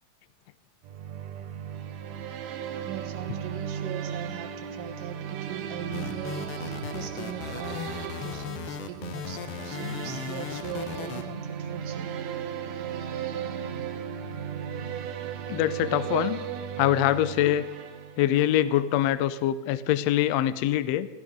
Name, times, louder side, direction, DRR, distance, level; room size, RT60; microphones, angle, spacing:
sound 1, 0.8-18.6, right 8 dB, 70° right, 1.9 m, -36 dB
voice 1, 2.8-12.1, right 9 dB, 85° right, 5 dB, 2.9 m, -40 dB
sound 2, 5.9-11.2, left 7 dB, 65° left, 1.5 m, -36 dB
voice 2, 15.5-16.4 16.8-17.6 18.2-21.1, left 12 dB, 80° left, 15 dB, 1.5 m, -24 dB
15.0 x 14.5 x 5.3 m, 1.2 s
omnidirectional pair, 3.8 m